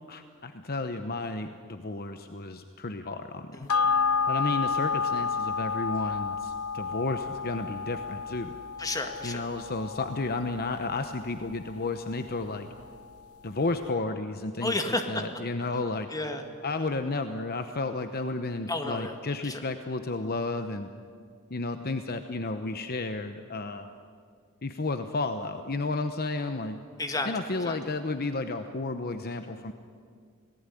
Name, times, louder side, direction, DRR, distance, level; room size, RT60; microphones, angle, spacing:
voice 1, 0.1-3.7 4.3-8.5 9.2-12.7 13.4-14.8 15.1-16.1 16.6-20.9 21.5-23.9 24.6-26.8 27.2-29.7, left 3 dB, 45° left, 8 dB, 0.9 m, -32 dB
sound 1, 3.7-12.4 12.8-12.9, left 5 dB, 85° left, 0.9 m, -31 dB
voice 2, 8.8-9.4 14.6-15.2 16.1-16.5 18.7-19.2 19.4-19.6 27.0-27.8, left 2 dB, 15° left, 5 dB, 2.0 m, -32 dB
27.5 x 18.5 x 9.9 m, 2.1 s
head